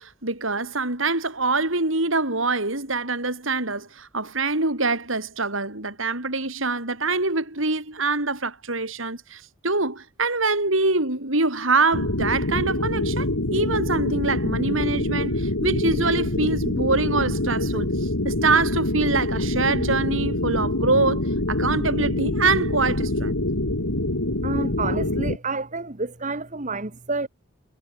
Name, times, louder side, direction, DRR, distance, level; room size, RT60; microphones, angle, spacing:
voice 1, 0.0-23.4, right 3 dB, 75° right, 6.0 m, -24 dB
sound 1, 11.9-25.4, left 1 dB, 85° left, 2.9 m, -25 dB
voice 2, 24.4-27.3, right 3 dB, 35° right, 1.7 m, -29 dB
head